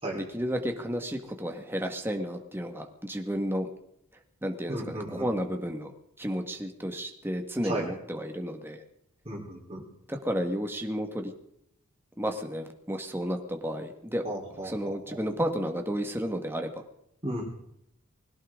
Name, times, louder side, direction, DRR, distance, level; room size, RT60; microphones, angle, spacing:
voice 1, 0.1-3.7 4.4-5.9 6.2-8.8 10.1-11.3 12.2-14.2 14.6-16.8, equal, 10° right, 4 dB, 1.6 m, -32 dB
voice 2, 4.7-5.3 7.6-7.9 9.3-9.9 14.2-15.2 17.2-17.4, right 1 dB, 25° right, -2 dB, 3.8 m, -35 dB
21.0 x 17.5 x 3.8 m, 0.75 s
head